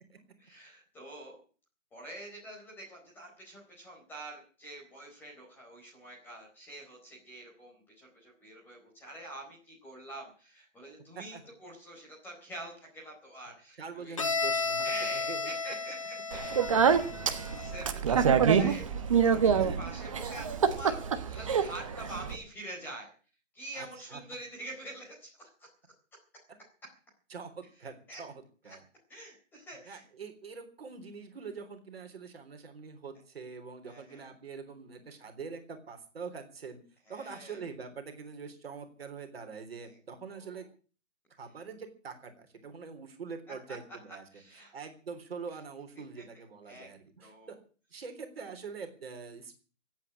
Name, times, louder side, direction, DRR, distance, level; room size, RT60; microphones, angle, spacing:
voice 1, 0.4-1.4 1.9-14.2 14.8-17.1 17.4-23.1 23.5-25.5 28.1-28.2 28.6-28.8 29.1-30.0 33.8-34.2 37.1-37.6 39.8-40.0 40.3-40.6 43.7-43.8 44.3-44.7 46.2-46.3 46.7-46.9 47.2-47.5, right 1 dB, 5° left, -3 dB, 4.2 m, -46 dB
voice 2, 13.8-15.5 19.5-19.8 23.7-24.2 27.3-28.3 28.6-28.8 29.9-36.8 37.1-40.7 41.4-44.2 44.7-47.6 47.9-49.5, right 5 dB, 50° right, 6 dB, 3.7 m, -44 dB
Bowed string instrument, 14.2-17.9, left 4 dB, 25° left, 0.7 m, -33 dB
Speech, 16.3-22.4, right 7 dB, 25° right, 1.2 m, -26 dB
17.0 x 8.7 x 9.8 m, 0.40 s
hypercardioid pair, 170°, 39 cm